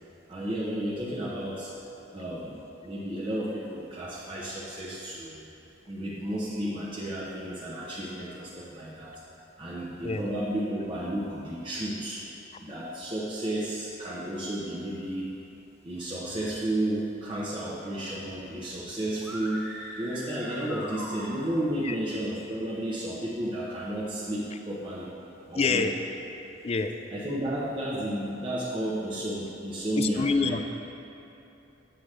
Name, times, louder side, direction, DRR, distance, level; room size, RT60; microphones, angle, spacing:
voice 1, 0.3-1.7 2.1-2.5 2.8-5.5 5.9-9.2 9.6-12.2 12.6-15.3 15.8-19.7 20.0-25.1 25.4-25.9 27.1-30.6, right 1 dB, 25° right, -7 dB, 0.8 m, -32 dB
sound 1, 19.1-21.7, equal, 5° right, 1.6 m, -40 dB
voice 2, 25.6-25.9 26.6-26.9 30.0-30.6, left 4 dB, 35° left, 7 dB, 0.3 m, -26 dB
7.8 x 7.3 x 3.3 m, 2.9 s
head